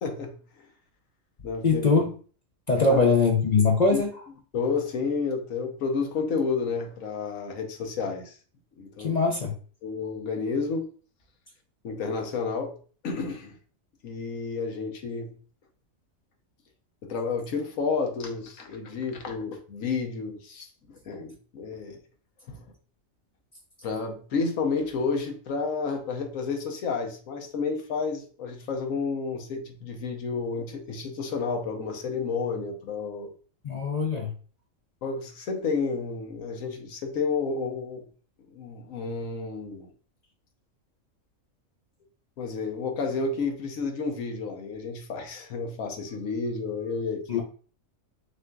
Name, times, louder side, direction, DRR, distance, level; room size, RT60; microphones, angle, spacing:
voice 1, 0.0-0.4 1.4-1.8 2.8-3.0 3.9-4.0 4.5-8.4 8.8-9.1 9.8-10.9 11.8-12.8 13.0-13.6 14.0-15.3 17.0-22.0 22.5-22.7 23.8-33.3 35.0-38.1 38.5-39.9 42.4-47.4, left 4 dB, 75° left, 4 dB, 1.2 m, -31 dB
voice 2, 1.6-2.1 2.7-4.1 9.0-9.5 33.6-34.3 47.3-47.4, left 4 dB, 45° left, 1 dB, 0.5 m, -22 dB
6.5 x 2.6 x 2.3 m, 0.40 s
omnidirectional pair, 1.4 m